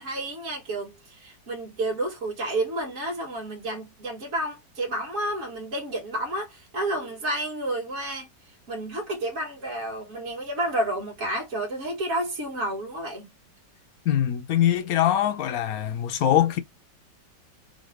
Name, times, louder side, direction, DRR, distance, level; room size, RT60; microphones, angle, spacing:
voice 1, 0.0-8.3 8.7-13.3, right 1 dB, 45° right, 2.0 m, -30 dB
voice 2, 14.0-16.6, left 11 dB, 60° left, 1.0 m, -23 dB
3.9 x 2.6 x 3.3 m
omnidirectional pair, 2.0 m